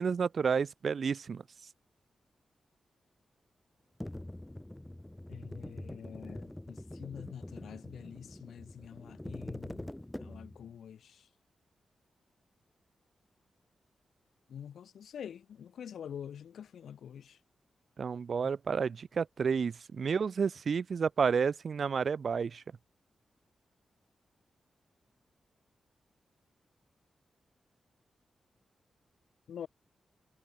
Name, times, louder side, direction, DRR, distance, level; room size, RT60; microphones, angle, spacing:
voice 1, 0.0-1.4 18.0-22.6, right 6 dB, 65° right, 1.2 m, -30 dB
sound 1, 4.0-10.7, left 1 dB, 10° left, 3.1 m, -44 dB
voice 2, 5.3-9.9 10.2-11.3 14.5-17.4 18.4-18.5 29.5-29.7, left 8 dB, 85° left, 7.7 m, -46 dB
cardioid pair, 70°, 0 cm